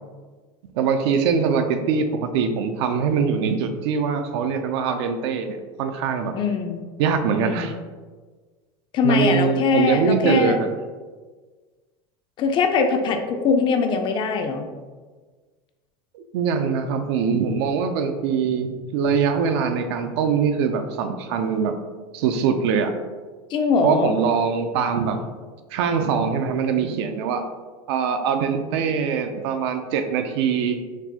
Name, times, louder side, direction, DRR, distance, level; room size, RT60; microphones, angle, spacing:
voice 1, 0.7-6.4 7.0-7.7 9.0-10.7 16.1-21.8 22.1-22.9 23.8-25.2 25.7-27.4 27.9-30.8, right 6 dB, 75° right, 7 dB, 0.4 m, -23 dB
voice 2, 6.3-6.8 7.4-7.7 8.9-10.6 12.4-14.6 23.5-24.2, left 5 dB, 35° left, 5 dB, 0.4 m, -22 dB
4.2 x 2.1 x 2.8 m, 1.4 s
supercardioid pair, 130°, 14 cm